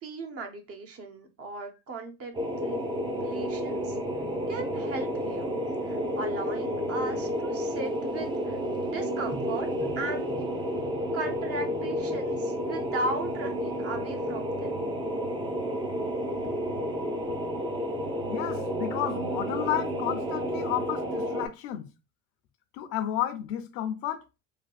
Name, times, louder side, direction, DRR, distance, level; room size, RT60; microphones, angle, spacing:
voice 1, 0.0-2.3 2.6-2.8 3.2-4.0 4.5-5.6 5.9-9.7 10.0-10.3 11.1-14.9, right 2 dB, 40° right, 0.9 m, -37 dB
sound 1, 2.3-21.5, equal, 15° right, 0.5 m, -31 dB
voice 2, 18.3-21.9 22.7-24.2, left 12 dB, 75° left, 0.6 m, -32 dB
3.4 x 2.3 x 2.3 m
supercardioid pair, 110°, 36 cm